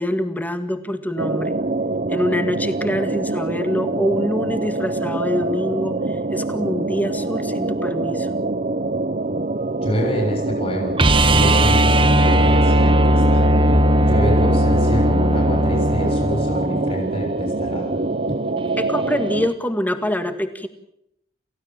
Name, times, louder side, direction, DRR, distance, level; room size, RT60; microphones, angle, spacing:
voice 1, 0.0-1.6 2.1-8.3 18.8-20.7, left 1 dB, 10° left, 9 dB, 1.8 m, -25 dB
sound 1, 1.2-19.5, right 2 dB, 45° right, 0.9 m, -25 dB
voice 2, 9.8-11.0 11.3-13.5 14.0-18.0 18.3-18.4, equal, 35° left, 1 dB, 6.6 m, -26 dB
sound 2, 11.0-16.9 19.4-19.5, right 1 dB, 30° right, 1.3 m, -17 dB
29.0 x 16.0 x 7.5 m, 0.79 s
head